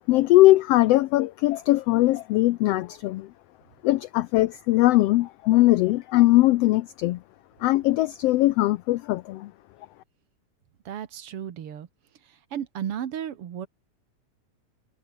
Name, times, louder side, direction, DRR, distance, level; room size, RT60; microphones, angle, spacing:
voice 1, 0.1-3.3 3.8-7.2 7.6-9.5, left 17 dB, 85° left, 1.4 m, -20 dB
voice 2, 10.9-11.9 12.5-13.7, right 9 dB, 55° right, 2.2 m, -33 dB
omnidirectional pair, 3.4 m